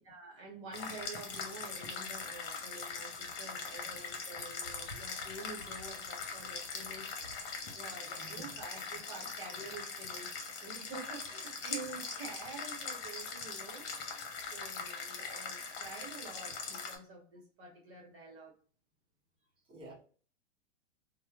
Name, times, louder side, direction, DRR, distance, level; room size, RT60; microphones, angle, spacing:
voice 1, 0.0-7.1 7.7-14.2 14.5-18.5, right 3 dB, 35° right, -1 dB, 1.2 m, -48 dB
sound 1, 0.7-17.0, left 5 dB, 50° left, 1.0 m, -41 dB
voice 2, 8.0-8.5 14.8-14.9 15.2-15.4 19.7-19.9, right 2 dB, 15° right, -6 dB, 1.1 m, -52 dB
2.9 x 2.2 x 2.4 m, 0.42 s
hypercardioid pair, 100°, 37 cm